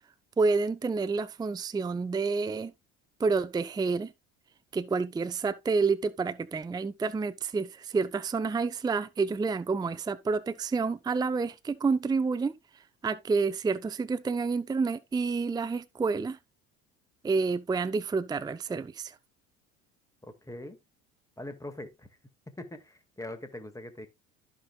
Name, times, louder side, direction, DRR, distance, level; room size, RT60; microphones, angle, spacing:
voice 1, 0.4-2.7 3.2-4.1 4.7-16.4 17.2-19.2, right 4 dB, 10° right, 0.5 m, -29 dB
voice 2, 20.2-20.8 21.4-22.1 22.5-24.1, left 1 dB, 10° left, 1.9 m, -42 dB
14.0 x 5.3 x 2.3 m
hypercardioid pair, 75°, 34 cm